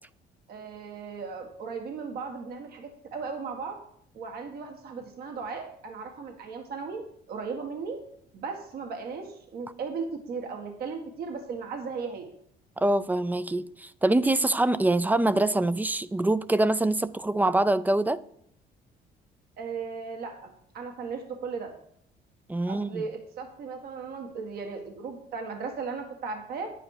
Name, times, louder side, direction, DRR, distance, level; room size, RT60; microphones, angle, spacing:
voice 1, 0.5-3.8 4.1-8.0 8.3-12.3 19.6-21.7 22.7-26.7, right 5 dB, 65° right, 1.8 m, -36 dB
voice 2, 12.8-18.2 22.5-23.0, right 2 dB, 10° right, 0.5 m, -24 dB
10.0 x 8.8 x 4.9 m
cardioid pair, 110°, 17 cm